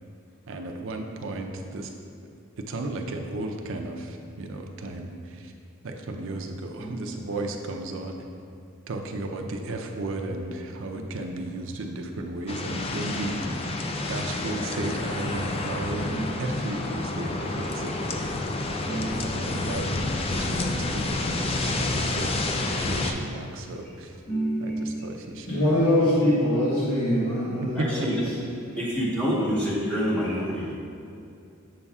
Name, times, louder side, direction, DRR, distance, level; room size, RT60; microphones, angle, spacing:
voice 1, 0.5-1.9 2.6-5.5 5.8-8.2 8.9-13.7 14.1-17.9 18.8-19.0 19.4-24.2 24.6-25.6 28.0-28.1, right 2 dB, 65° right, 3 dB, 0.5 m, -34 dB
voice 2, 6.8-7.2 10.9-11.0 16.1-16.5 18.8-19.7 24.3-25.0 27.7-28.2 28.8-30.7, equal, 5° left, -7 dB, 1.1 m, -28 dB
sound 1, 12.5-23.1, left 2 dB, 25° left, 0.4 m, -29 dB
voice 3, 25.5-28.2, left 1 dB, 75° left, -10 dB, 1.2 m, -23 dB
7.6 x 5.5 x 2.3 m, 2.6 s
head